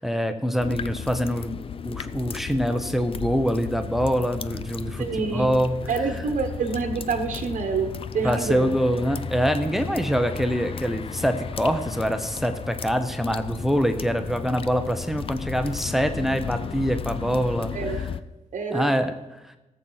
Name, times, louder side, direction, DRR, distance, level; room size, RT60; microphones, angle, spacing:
voice 1, 0.0-1.6 1.8-5.7 8.2-17.7 18.7-19.1 19.4-19.5, equal, ahead, 8 dB, 0.6 m, -25 dB
sound 1, 0.6-18.2, left 7 dB, 45° left, 0.4 m, -34 dB
voice 2, 5.0-5.6 5.9-8.7 17.7-18.1 18.5-19.0, right 5 dB, 80° right, 4 dB, 1.0 m, -27 dB
17.5 x 7.4 x 3.9 m, 1.0 s
wide cardioid pair, 135°, 13 cm